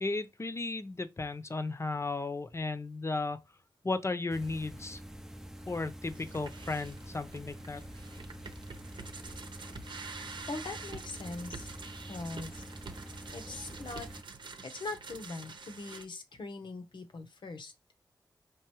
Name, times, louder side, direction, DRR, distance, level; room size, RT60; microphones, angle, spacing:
voice 1, 0.0-3.4 3.8-5.0 5.7-7.8, left 3 dB, 35° left, 0.7 m, -35 dB
sound 1, 4.3-14.2, equal, 5° right, 0.5 m, -47 dB
sound 2, 6.1-16.0, right 4 dB, 70° right, 0.8 m, -47 dB
voice 2, 10.5-11.8 12.1-12.7 13.3-14.1 14.6-17.7, left 3 dB, 70° left, 0.9 m, -41 dB
4.8 x 2.5 x 3.0 m
cardioid pair, 40°, 8 cm